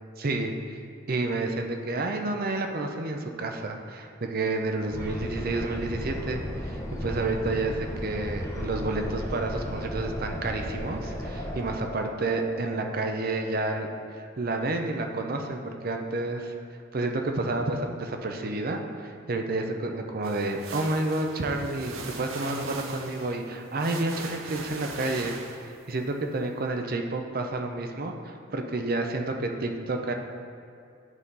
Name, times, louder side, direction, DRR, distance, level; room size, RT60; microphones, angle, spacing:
voice 1, 0.2-0.8 1.1-16.5 16.9-30.1, right 2 dB, 45° right, 4 dB, 0.6 m, -30 dB
sound 1, 4.9-11.7, equal, 15° left, 0.7 m, -35 dB
sound 2, 9.1-14.0, equal, 45° left, 0.8 m, -43 dB
sound 3, 20.2-25.9, right 4 dB, 85° right, 0.7 m, -40 dB
11.0 x 3.8 x 4.0 m, 2.4 s
head